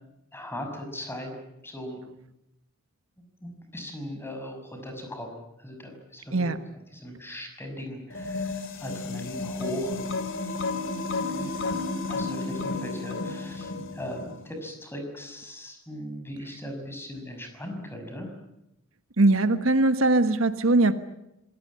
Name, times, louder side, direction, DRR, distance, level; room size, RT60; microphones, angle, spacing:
voice 1, 0.3-1.3 1.6-2.0 3.4-6.5 6.9-10.5 11.2-11.8 12.1-18.3, equal, 10° left, 5 dB, 6.0 m, -38 dB
sound 1, 8.1-14.4, left 3 dB, 65° left, 2.7 m, -32 dB
voice 2, 19.2-20.9, right 2 dB, 80° right, 11 dB, 1.4 m, -21 dB
26.0 x 18.0 x 9.7 m, 0.88 s
head